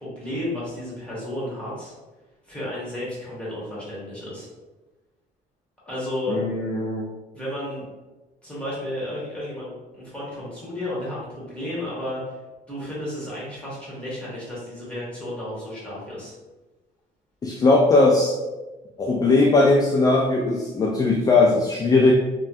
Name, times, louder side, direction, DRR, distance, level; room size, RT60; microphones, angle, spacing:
voice 1, 0.0-1.9 2.4-4.5 5.8-6.4 7.3-7.8 8.4-12.4 12.7-16.3, left 1 dB, 5° left, -8 dB, 1.5 m, -32 dB
voice 2, 6.3-7.1 17.4-18.3 19.0-22.1, left 3 dB, 20° left, -1 dB, 0.3 m, -19 dB
3.1 x 2.2 x 2.7 m, 1.1 s
cardioid pair, 110°, 17 cm